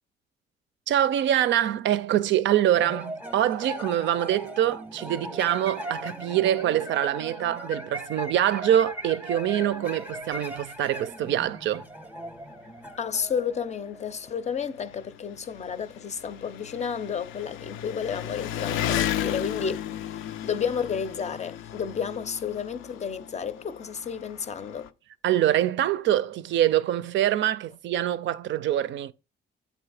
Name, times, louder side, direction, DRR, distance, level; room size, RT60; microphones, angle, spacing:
voice 1, 0.9-11.9 25.2-29.1, right 11 dB, 70° right, 0.4 m, -24 dB
sound 1, 2.7-14.3, equal, 10° right, 0.6 m, -39 dB
Engine, 10.3-10.4 10.8-10.9 11.9-12.0 12.2-24.9, left 11 dB, 85° left, 0.4 m, -35 dB
voice 2, 13.0-24.9, left 7 dB, 35° left, 0.5 m, -31 dB
7.6 x 2.6 x 4.8 m
cardioid pair, 90°, 20 cm